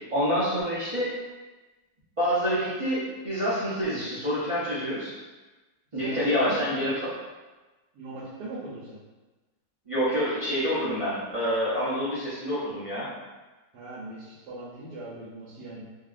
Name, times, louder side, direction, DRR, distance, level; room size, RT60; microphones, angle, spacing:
voice 1, 0.1-1.1 2.2-5.1 5.9-7.1 9.9-13.1, equal, 45° right, -12 dB, 0.4 m, -27 dB
voice 2, 6.0-6.9 7.9-9.0 13.7-15.8, right 2 dB, 85° right, -7 dB, 1.3 m, -39 dB
2.8 x 2.7 x 2.4 m, 1.2 s
omnidirectional pair, 1.8 m